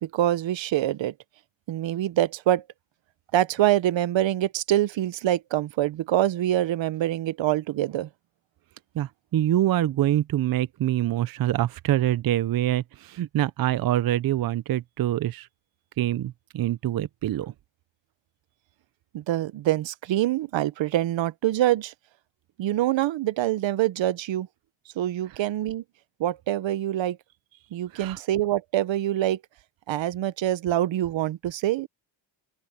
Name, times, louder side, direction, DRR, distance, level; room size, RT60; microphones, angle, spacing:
voice 1, 0.0-1.1 1.7-2.6 3.3-8.1 19.1-21.9 22.6-24.5 25.0-25.8 26.2-27.2 27.7-29.4 29.9-31.9, right 13 dB, 75° right, 0.9 m, -25 dB
voice 2, 8.9-15.5 16.0-17.5 27.9-28.2, right 13 dB, 50° right, 0.5 m, -25 dB
open air
wide cardioid pair, 150°, 45 cm